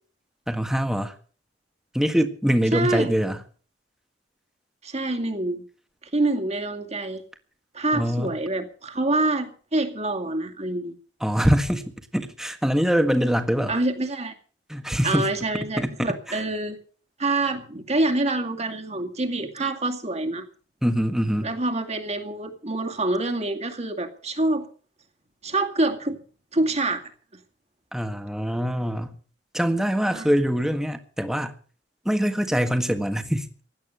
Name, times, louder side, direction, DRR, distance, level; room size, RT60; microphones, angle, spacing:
voice 1, 0.5-1.1 1.9-3.4 7.9-8.3 11.2-11.8 12.1-13.8 14.7-15.3 15.8-16.4 20.8-21.5 27.9-29.2 29.5-31.5 32.0-33.5, equal, 5° right, 7 dB, 1.6 m, -24 dB
voice 2, 2.7-3.1 4.8-5.6 6.1-7.2 7.7-10.9 13.7-14.3 15.0-16.8 17.2-20.4 21.4-24.7 25.4-26.2 26.5-27.0 30.1-30.3, right 2 dB, 40° right, 4 dB, 2.3 m, -26 dB
16.5 x 11.0 x 6.8 m, 0.42 s
head